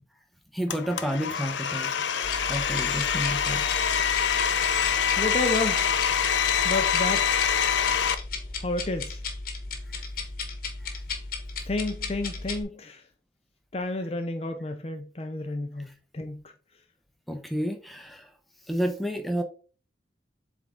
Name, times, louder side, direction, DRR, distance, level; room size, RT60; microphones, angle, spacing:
voice 1, 0.5-1.9 2.5-3.6 17.3-18.3 18.7-19.4, equal, ahead, 0.8 m, -30 dB
Domestic sounds home sounds, 0.7-8.1, left 8 dB, 75° left, 0.5 m, -25 dB
sound 1, 2.2-12.6, left 4 dB, 50° left, 1.1 m, -35 dB
voice 2, 5.2-5.8 6.6-7.4 8.6-9.2 11.7-13.0 13.7-16.4, left 2 dB, 30° left, 0.6 m, -31 dB
7.6 x 3.7 x 3.6 m
head